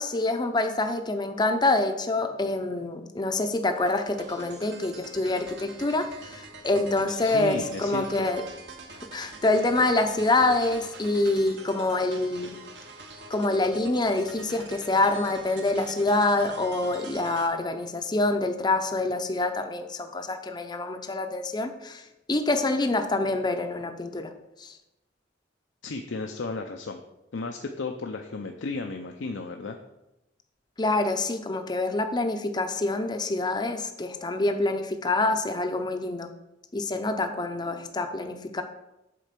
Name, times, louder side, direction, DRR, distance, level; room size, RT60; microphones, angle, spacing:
voice 1, 0.0-8.4 9.1-12.5 13.3-22.0 22.3-24.3 24.6-24.7 30.8-36.3 36.7-38.6, left 2 dB, 25° left, 6 dB, 0.6 m, -26 dB
sound 1, 3.8-17.5, right 3 dB, 65° right, 1.1 m, -45 dB
voice 2, 7.2-8.3 25.8-27.0 27.3-29.8, left 3 dB, 85° left, 4 dB, 0.6 m, -34 dB
7.5 x 4.5 x 6.7 m, 0.92 s
head